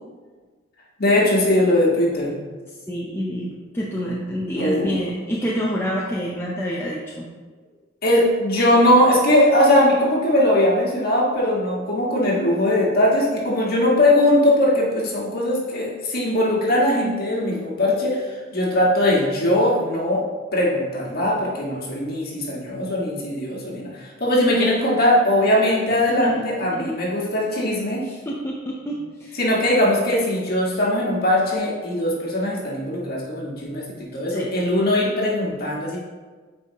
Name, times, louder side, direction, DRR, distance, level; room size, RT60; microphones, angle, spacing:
voice 1, 1.0-2.4 4.5-4.9 8.0-20.2 20.5-28.0 29.4-36.0, left 1 dB, 50° left, -4 dB, 1.6 m, -20 dB
voice 2, 2.9-3.5 3.7-7.3 25.9-27.0 28.0-29.4 34.3-34.5, equal, 10° left, -4 dB, 0.6 m, -28 dB
8.4 x 4.5 x 2.9 m, 1.4 s
head